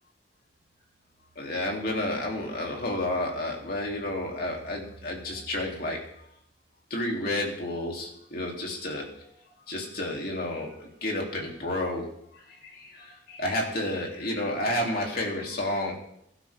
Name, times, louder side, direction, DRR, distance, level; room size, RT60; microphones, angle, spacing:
voice 1, 1.3-6.0 6.9-9.1 9.7-12.1 12.3-15.9, left 1 dB, 50° left, 0 dB, 3.1 m, -31 dB
22.0 x 12.0 x 3.6 m, 0.76 s
head